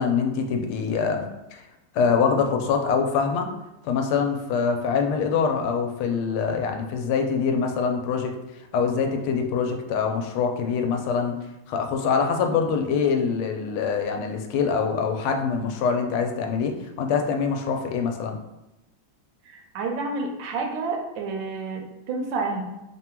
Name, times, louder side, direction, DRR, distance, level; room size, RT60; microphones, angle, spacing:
voice 1, 0.0-1.6 1.9-3.5 3.8-8.3 8.7-11.4 11.7-18.4, left 5 dB, 90° left, 4 dB, 1.5 m, -24 dB
voice 2, 19.5-22.6, right 3 dB, 70° right, 2 dB, 1.3 m, -29 dB
3.7 x 2.2 x 4.3 m, 0.97 s
omnidirectional pair, 2.3 m